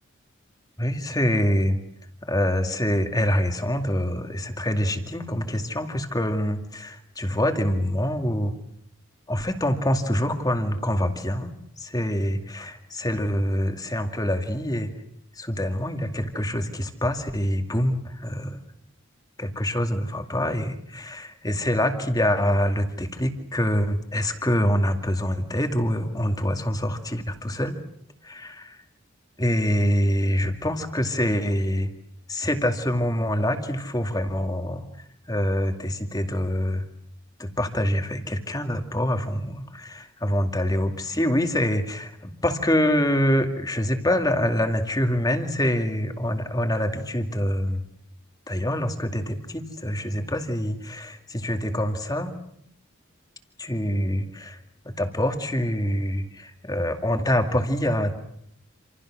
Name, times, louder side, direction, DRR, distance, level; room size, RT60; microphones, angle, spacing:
voice 1, 0.8-1.8 2.2-8.6 9.3-14.9 15.4-18.6 19.4-27.8 28.2-28.7 29.4-31.9 32.3-34.9 35.3-36.8 37.4-47.8 48.5-52.4 53.6-54.6 55.0-58.2, equal, 20° left, 5 dB, 2.3 m, -25 dB
28.0 x 28.0 x 6.3 m, 0.71 s
head